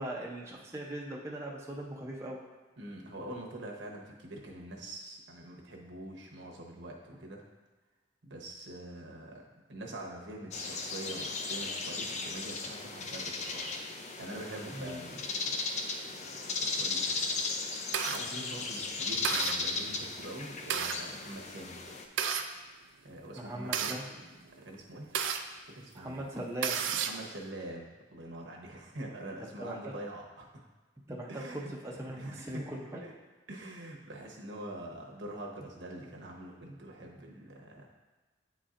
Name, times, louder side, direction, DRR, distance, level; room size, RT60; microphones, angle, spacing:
voice 1, 0.0-2.4 14.7-15.0 23.4-24.2 25.9-27.0 29.6-29.9 31.1-33.0, right 1 dB, 15° right, -3 dB, 0.6 m, -40 dB
voice 2, 2.8-7.4 8.2-13.7 14.2-15.7 16.2-17.3 18.1-21.8 23.0-24.0 24.6-25.1 25.5-26.3 27.0-30.6 31.3-31.7 32.2-32.6 33.0-33.1 33.5-37.9, right 1 dB, 70° right, -1 dB, 1.0 m, -45 dB
sound 1, 10.5-22.0, left 3 dB, 40° left, 0.5 m, -36 dB
sound 2, 17.2-18.2 18.8-18.9 19.2-19.6 20.3-21.0 21.9-22.5 23.2-25.4 26.0-26.1 26.4-27.2, right 7 dB, 85° right, 0.4 m, -32 dB
9.2 x 4.2 x 2.5 m, 1.3 s
head